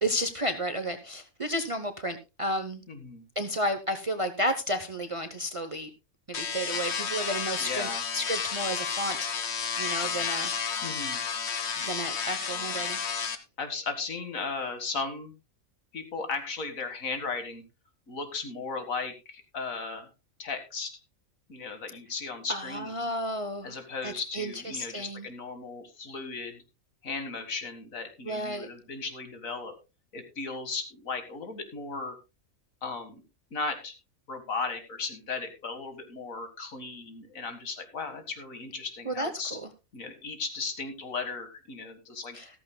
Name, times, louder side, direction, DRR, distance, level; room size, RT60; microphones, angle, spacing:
voice 1, 0.0-2.8 3.4-5.9 6.3-9.3 9.8-10.5 11.8-13.0 22.5-25.3 28.2-28.7 39.1-39.7 42.3-42.5, equal, 30° right, 9 dB, 0.7 m, -32 dB
voice 2, 2.9-3.2 7.6-8.0 10.8-11.2 13.6-15.3 15.9-17.6 18.1-20.1 20.4-20.9 21.5-23.0 23.6-26.6 27.0-29.7 30.1-32.2 32.8-33.2 33.5-33.9 34.3-39.6 39.9-42.4, left 4 dB, 70° left, 8 dB, 2.1 m, -36 dB
sound 1, 6.3-13.4, left 6 dB, 55° left, 1.2 m, -31 dB
14.0 x 13.5 x 2.2 m, 0.27 s
omnidirectional pair, 1.5 m